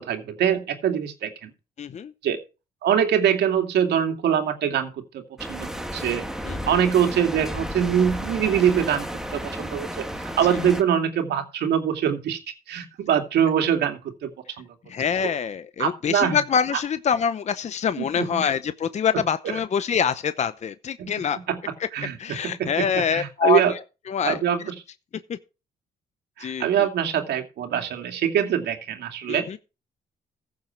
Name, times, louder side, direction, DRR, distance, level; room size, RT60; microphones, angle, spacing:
voice 1, 0.0-1.5 2.2-2.4 2.8-6.2 6.7-9.1 9.3-12.4 12.7-14.3 14.6-14.7 15.8-16.4 18.0-18.4 19.1-19.5 21.0-21.6 21.9-23.7 24.2-24.8 26.4-29.5, right 9 dB, 75° right, 2.6 m, -24 dB
voice 2, 1.8-2.1 6.4-6.7 14.9-21.4 22.2-23.6 24.1-24.4 25.3-25.4 26.4-26.7 29.3-29.6, left 7 dB, 40° left, 0.8 m, -25 dB
sound 1, 5.4-10.8, equal, 5° right, 1.7 m, -33 dB
15.5 x 7.3 x 4.6 m
cardioid pair, 100°, 17 cm